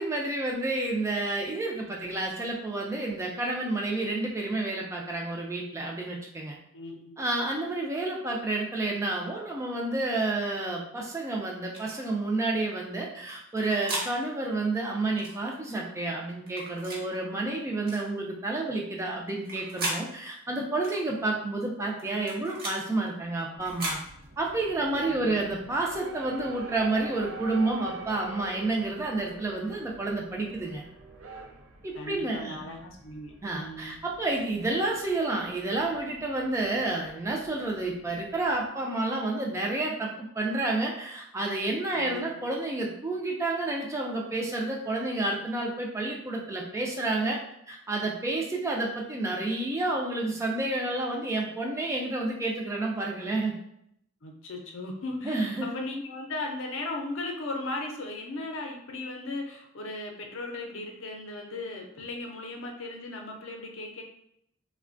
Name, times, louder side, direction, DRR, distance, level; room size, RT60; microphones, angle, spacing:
voice 1, 0.0-6.6 7.2-24.0 24.4-30.8 31.8-32.6 33.4-47.4 47.7-53.5 55.2-55.7, right 2 dB, 15° right, -1 dB, 0.3 m, -30 dB
voice 2, 6.7-7.2 25.1-25.5 31.9-34.0 41.9-42.4 54.2-64.0, left 2 dB, 65° left, 2 dB, 0.5 m, -37 dB
sound 1, 11.7-12.0 13.3-14.1 15.2-15.4 16.5-17.0 17.9-18.1 19.3-20.0 20.8-21.0 22.0-22.8 23.6-24.0, right 1 dB, 45° right, 0.8 m, -35 dB
sound 2, 23.5-38.7, right 2 dB, 80° right, 0.4 m, -47 dB
3.2 x 2.1 x 2.5 m, 0.75 s
head